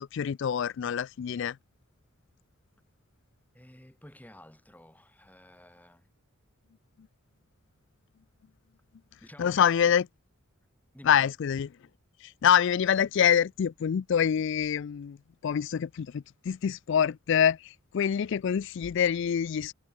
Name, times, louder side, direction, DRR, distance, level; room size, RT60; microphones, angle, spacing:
voice 1, 0.0-1.6 9.4-10.0 11.1-11.7 12.4-15.2 15.4-17.6 17.9-19.7, left 8 dB, 60° left, 0.3 m, -25 dB
voice 2, 3.5-6.1 9.2-9.9 10.9-11.3, left 1 dB, 10° left, 3.4 m, -51 dB
head